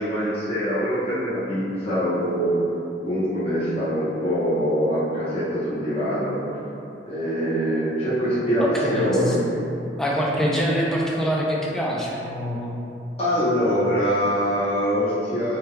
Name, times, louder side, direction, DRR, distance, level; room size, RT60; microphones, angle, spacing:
voice 1, 0.0-2.5 3.0-6.4 7.1-9.5 13.2-15.6, equal, 35° left, -11 dB, 0.9 m, -23 dB
voice 2, 8.6-9.4 10.0-12.7, equal, 5° left, -5 dB, 0.5 m, -24 dB
4.2 x 3.3 x 2.2 m, 2.7 s
head